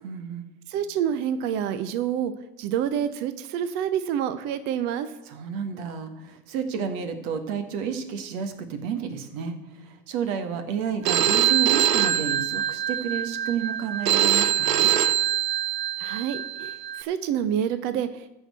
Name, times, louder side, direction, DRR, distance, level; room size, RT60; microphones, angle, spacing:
voice 1, 0.0-0.5 5.3-14.9, right 7 dB, 60° right, 8 dB, 1.8 m, -31 dB
voice 2, 0.7-2.3 2.6-5.1 16.0-18.3, right 9 dB, 25° right, 11 dB, 0.3 m, -27 dB
Telephone, 11.1-17.0, right 11 dB, 85° right, 0.9 m, -24 dB
13.0 x 4.5 x 7.9 m, 0.92 s
hypercardioid pair, 110°, 49 cm